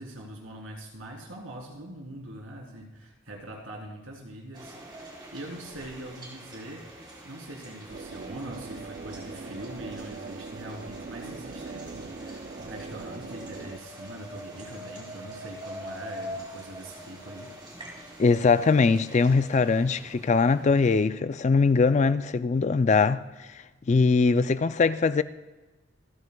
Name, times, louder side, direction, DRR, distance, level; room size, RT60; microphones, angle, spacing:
voice 1, 0.0-17.5, right 1 dB, 75° right, 3.4 m, -42 dB
sound 1, 4.5-21.0, equal, 20° right, 3.9 m, -44 dB
sound 2, 7.9-13.8, right 4 dB, 40° right, 0.3 m, -41 dB
voice 2, 18.2-25.2, left 4 dB, 35° left, 0.3 m, -22 dB
26.5 x 9.6 x 2.3 m
head